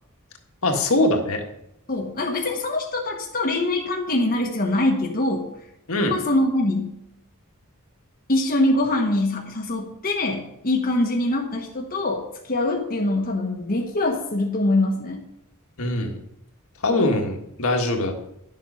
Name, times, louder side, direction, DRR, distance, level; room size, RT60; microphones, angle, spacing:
voice 1, 0.6-1.4 5.9-6.1 15.8-16.2 16.8-18.2, left 2 dB, 70° left, 3 dB, 1.7 m, -22 dB
voice 2, 1.9-5.5 6.1-7.0 8.3-15.2, left 2 dB, 40° left, 0 dB, 1.2 m, -23 dB
11.0 x 7.7 x 5.6 m, 0.80 s
head